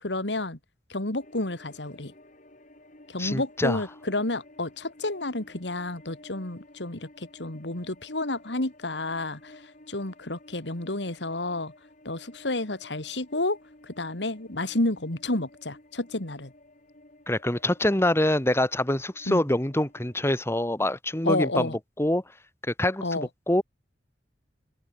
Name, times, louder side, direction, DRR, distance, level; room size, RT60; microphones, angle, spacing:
voice 1, 0.0-0.6 0.9-2.1 3.1-9.6 9.9-11.7 12.0-13.6 13.8-16.5 19.3-19.5 21.2-21.8 23.0-23.3, left 2 dB, 85° left, 3.0 m, -30 dB
sound 1, 1.2-20.2, left 1 dB, 45° left, 6.5 m, -53 dB
voice 2, 3.2-3.8 17.3-21.7 22.0-22.2 22.7-23.6, left 1 dB, 15° left, 2.1 m, -25 dB
open air
head